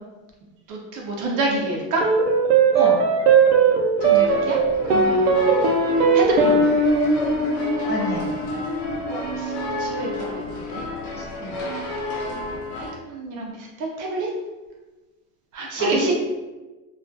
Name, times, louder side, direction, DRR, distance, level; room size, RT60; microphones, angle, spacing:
voice 1, 0.7-2.0 4.0-4.6 4.9-5.4 6.1-6.6 9.1-9.5 9.8-10.8 12.3-12.4 12.8-14.3 15.5-16.1, right 2 dB, 45° right, -1 dB, 0.6 m, -28 dB
sound 1, 2.0-10.6, right 4 dB, 90° right, 0.5 m, -20 dB
sound 2, 4.0-12.9, left 1 dB, 60° left, 0.9 m, -31 dB
voice 2, 7.8-8.3 11.1-11.5 15.6-16.1, left 1 dB, 25° left, -4 dB, 0.7 m, -28 dB
2.3 x 2.2 x 2.6 m, 1.2 s
supercardioid pair, 110°, 42 cm